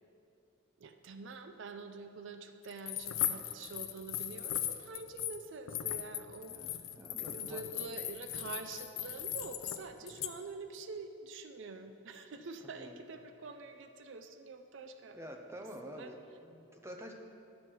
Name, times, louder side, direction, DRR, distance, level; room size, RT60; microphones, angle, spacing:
voice 1, 0.8-6.9 7.2-15.2 15.8-16.1, right 3 dB, 60° right, 7 dB, 0.4 m, -46 dB
sound 1, 2.7-5.4 5.7-9.8 10.1-10.3, left 11 dB, 80° left, 0.4 m, -38 dB
voice 2, 6.4-7.6 12.8-13.0 15.1-16.1 16.4-17.1, equal, 10° right, 2 dB, 0.6 m, -48 dB
11.0 x 6.2 x 4.5 m, 2.6 s
head